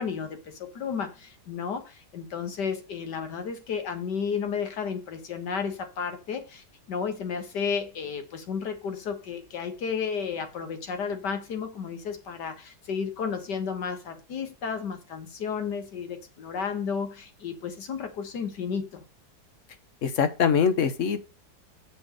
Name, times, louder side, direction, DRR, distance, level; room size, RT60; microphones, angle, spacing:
voice 1, 0.0-19.0, left 6 dB, 75° left, 2.0 m, -32 dB
voice 2, 20.0-21.2, left 7 dB, 50° left, 1.1 m, -23 dB
7.1 x 5.0 x 6.4 m
omnidirectional pair, 1.9 m